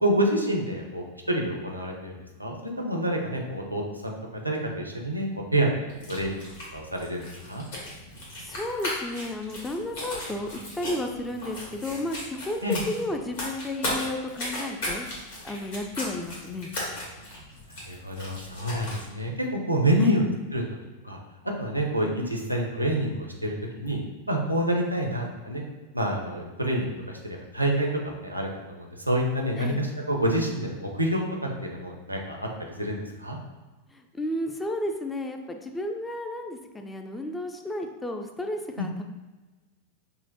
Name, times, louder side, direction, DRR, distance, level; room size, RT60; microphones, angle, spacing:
voice 1, 0.0-5.7 6.1-6.4 6.7-7.6 12.6-12.8 17.7-20.2 20.5-20.6 21.0-21.2 21.6-24.0 24.3-25.6 25.9-33.4 38.8-38.9, right 1 dB, 90° right, 1 dB, 0.6 m, -28 dB
sound 1, 5.9-19.1, left 1 dB, 55° left, 1.3 m, -37 dB
voice 2, 8.4-15.1 15.4-16.7 20.0-20.2 29.6-29.8 33.9-39.0, left 1 dB, 10° left, 4 dB, 0.3 m, -33 dB
5.5 x 2.1 x 2.8 m, 1.2 s
figure-of-eight pair, 90°, 0 cm